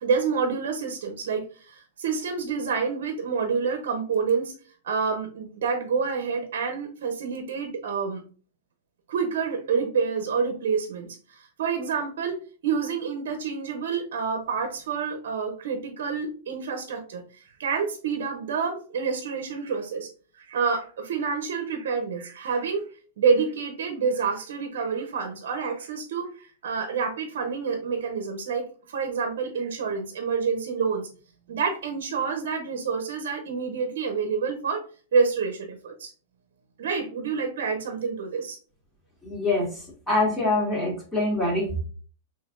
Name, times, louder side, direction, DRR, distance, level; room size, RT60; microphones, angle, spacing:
voice 1, 0.0-4.5 4.8-8.2 9.1-12.4 12.6-17.2 17.6-20.1 20.4-22.9 23.2-31.1 31.5-34.8 35.1-36.1 36.8-38.6, right 5 dB, 70° right, 5 dB, 0.7 m, -28 dB
voice 2, 39.2-41.8, left 2 dB, 10° left, -3 dB, 1.9 m, -25 dB
4.3 x 3.3 x 2.5 m, 0.40 s
hypercardioid pair, 125°, 0 cm